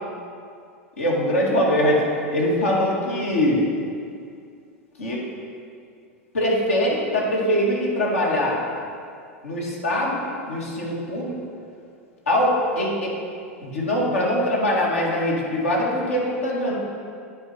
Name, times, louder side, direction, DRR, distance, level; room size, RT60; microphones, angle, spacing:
voice 1, 1.0-2.0 2.3-3.6 5.0-5.2 6.3-8.6 9.4-11.4 12.3-13.1 13.6-16.8, left 1 dB, 80° left, -4 dB, 2.0 m, -22 dB
9.8 x 4.6 x 5.9 m, 2.3 s
hypercardioid pair, 90°, 7 cm